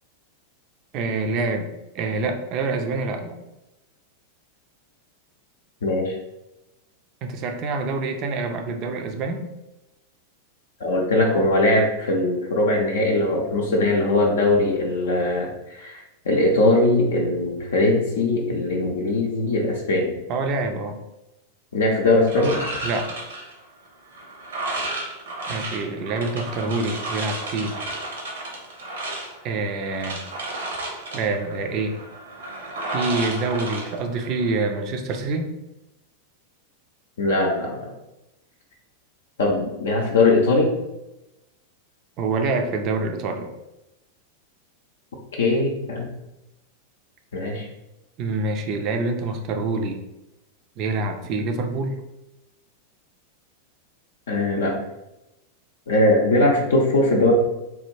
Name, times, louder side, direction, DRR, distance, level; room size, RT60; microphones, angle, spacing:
voice 1, 0.9-1.7 1.9-3.4 7.2-9.4 20.3-21.0 22.8-23.1 25.5-27.7 29.4-30.2 31.1-32.0 32.9-35.5 42.2-43.5 48.2-50.0 50.8-52.0, right 3 dB, 40° right, 5 dB, 0.4 m, -26 dB
voice 2, 5.8-6.2 10.8-20.1 21.7-22.6 37.2-37.9 39.4-40.7 45.3-46.1 47.3-47.7 54.3-54.8 55.9-57.3, left 2 dB, 65° left, 0 dB, 0.5 m, -20 dB
sound 1, 22.3-34.6, right 2 dB, 65° right, 0.8 m, -33 dB
3.3 x 2.4 x 3.0 m, 0.95 s
figure-of-eight pair, 90°, 0 cm